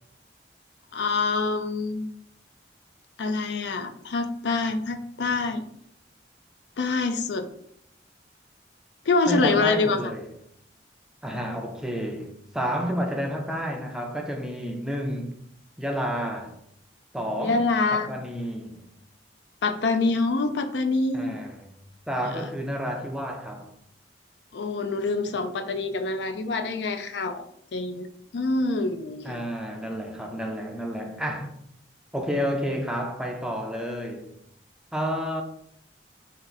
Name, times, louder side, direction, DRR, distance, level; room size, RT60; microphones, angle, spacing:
voice 1, 0.9-2.0 3.2-5.6 6.8-7.4 9.1-10.1 17.4-18.1 19.6-21.4 22.2-22.5 24.5-27.5 27.7-28.1 28.3-29.4, left 3 dB, 75° left, 0.4 m, -26 dB
voice 2, 9.3-10.3 11.2-15.4 15.8-16.6 17.1-18.8 21.1-21.7 22.1-23.7 29.2-31.5 32.1-34.3 34.9-35.4, equal, 5° right, 0.4 m, -30 dB
3.8 x 2.6 x 3.9 m
head